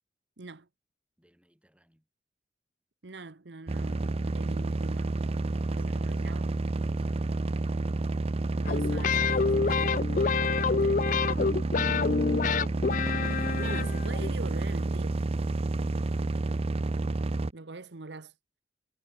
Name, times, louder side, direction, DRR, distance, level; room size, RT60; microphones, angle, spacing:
voice 1, 0.4-0.7 3.0-5.2 5.7-6.5 8.5-10.1 10.6-11.1 13.6-15.2 17.5-18.3, right 3 dB, 70° right, 1.0 m, -44 dB
voice 2, 1.2-2.1 5.4-7.3, equal, 5° right, 6.5 m, -60 dB
sound 1, 3.7-17.5, right 2 dB, 35° right, 0.5 m, -30 dB
sound 2, 8.7-14.3, left 5 dB, 45° left, 0.4 m, -28 dB
head